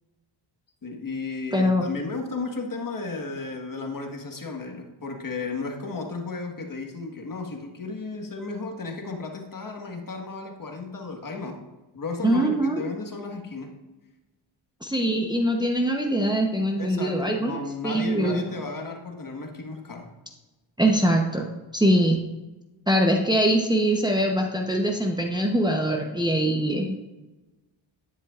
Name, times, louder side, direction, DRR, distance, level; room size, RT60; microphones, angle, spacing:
voice 1, 0.8-11.6 11.9-13.7 16.8-20.1, left 3 dB, 40° left, 2 dB, 1.6 m, -34 dB
voice 2, 1.5-1.9 12.2-12.8 14.8-18.4 20.8-21.5 21.7-22.2 22.9-27.0, right 1 dB, 10° right, 0 dB, 0.9 m, -23 dB
10.5 x 9.9 x 2.5 m, 1.1 s
cardioid pair, 90°, 48 cm